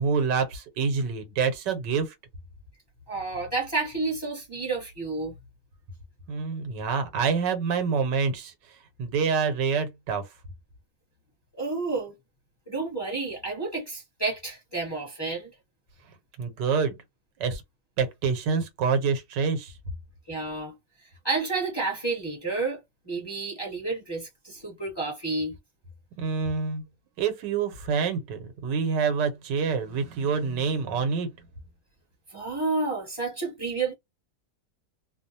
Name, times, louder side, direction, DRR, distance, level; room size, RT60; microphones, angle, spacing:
voice 1, 0.0-2.1 6.3-8.5 9.0-10.2 16.4-17.0 17.4-17.6 18.0-19.8 26.2-26.8 27.2-31.3, right 5 dB, 80° right, 1.4 m, -26 dB
voice 2, 3.1-5.3 11.6-12.1 12.7-15.5 20.3-20.7 21.0-22.8 23.1-25.5 32.3-33.9, right 3 dB, 15° left, 0.9 m, -30 dB
3.0 x 2.0 x 2.6 m
omnidirectional pair, 1.9 m